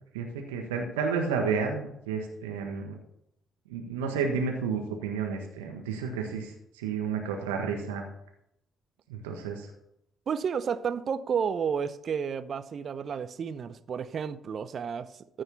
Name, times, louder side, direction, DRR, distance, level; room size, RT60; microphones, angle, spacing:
voice 1, 0.1-3.0 3.7-8.0 9.1-9.7, right 5 dB, 80° right, 3 dB, 1.5 m, -31 dB
voice 2, 10.3-15.4, right 7 dB, 50° right, 13 dB, 0.8 m, -31 dB
14.5 x 6.4 x 5.7 m, 0.78 s
figure-of-eight pair, 45°, 0 cm